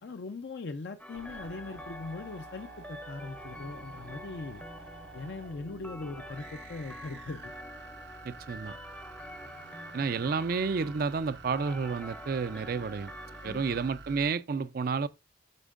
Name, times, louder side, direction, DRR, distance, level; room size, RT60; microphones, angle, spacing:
voice 1, 0.0-4.6 5.1-7.5 13.4-13.8, left 3 dB, 65° left, 0.5 m, -40 dB
sound 1, 1.0-13.9, left 1 dB, 10° left, 0.6 m, -47 dB
sound 2, 1.1-14.3, right 4 dB, 75° right, 0.8 m, -49 dB
voice 2, 8.2-8.7 9.9-13.1 13.4-15.1, right 5 dB, 55° right, 0.4 m, -30 dB
12.0 x 4.4 x 2.5 m
head